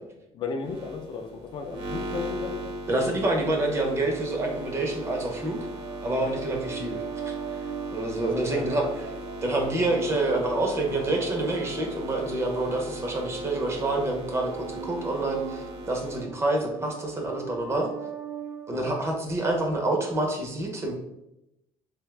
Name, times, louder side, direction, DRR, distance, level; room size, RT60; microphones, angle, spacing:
voice 1, 0.3-2.6 8.2-8.6 18.7-18.9, left 4 dB, 45° left, 4 dB, 0.4 m, -34 dB
sound 1, 0.6-16.2, right 1 dB, 55° right, 0.9 m, -38 dB
voice 2, 2.9-5.6 6.0-7.7 7.9-8.9 9.4-17.9 18.7-20.9, right 2 dB, 25° right, 2 dB, 0.6 m, -27 dB
sound 2, 4.1-19.5, right 6 dB, 80° right, 0.6 m, -41 dB
3.4 x 2.7 x 3.2 m, 0.87 s
cardioid pair, 165°, 12 cm